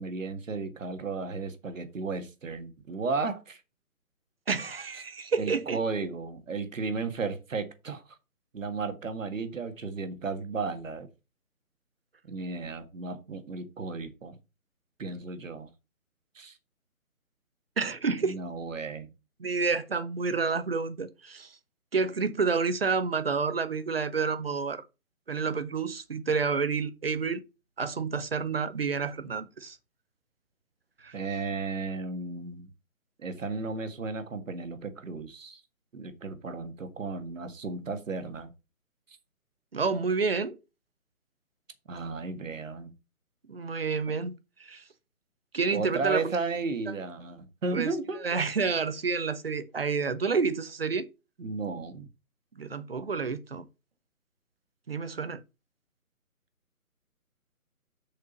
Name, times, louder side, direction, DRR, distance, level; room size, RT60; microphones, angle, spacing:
voice 1, 0.0-3.6 5.4-8.0 8.5-11.1 12.3-14.4 15.0-15.7 16.4-16.6 18.2-19.1 31.1-32.7 33.2-35.6 35.9-38.5 41.9-42.9 45.7-48.4 51.4-52.1, right 4 dB, 60° right, 1.7 m, -34 dB
voice 2, 4.5-5.8 17.8-18.4 19.4-21.6 21.9-24.8 25.3-27.4 27.8-29.8 31.0-31.1 39.7-40.6 43.5-44.8 45.5-46.3 47.7-51.1 52.6-53.6 54.9-55.4, right 5 dB, 45° right, 0.8 m, -29 dB
7.0 x 5.2 x 5.2 m
hypercardioid pair, 170°, 44 cm